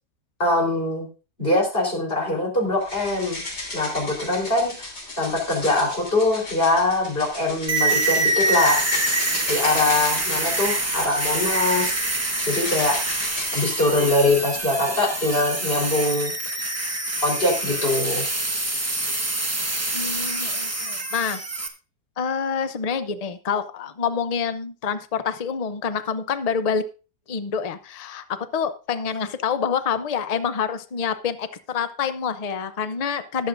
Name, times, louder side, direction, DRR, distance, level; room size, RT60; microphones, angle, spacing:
voice 1, 0.4-1.1 1.4-3.4 3.7-4.9 5.2-8.9 9.5-13.0 13.5-16.7 17.2-18.2, left 2 dB, 35° left, -2 dB, 4.4 m, -23 dB
sound 1, 2.8-13.8, left 2 dB, 75° left, 4.1 m, -35 dB
sound 2, 7.7-21.7, right 2 dB, 10° right, 0.9 m, -25 dB
voice 2, 19.9-21.4 22.2-26.8 27.3-33.5, left 6 dB, 50° left, 11 dB, 0.4 m, -27 dB
19.5 x 7.7 x 2.6 m, 0.33 s
omnidirectional pair, 1.8 m